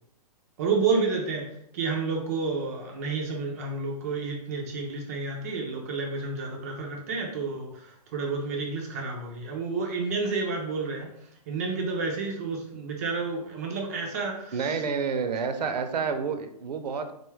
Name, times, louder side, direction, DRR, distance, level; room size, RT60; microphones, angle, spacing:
voice 1, 0.6-1.5 1.7-11.1 11.5-14.8, right 4 dB, 25° right, 0 dB, 0.4 m, -30 dB
voice 2, 14.5-17.1, right 5 dB, 80° right, 7 dB, 0.6 m, -29 dB
3.8 x 2.3 x 3.1 m, 0.74 s
hypercardioid pair, 160°, 21 cm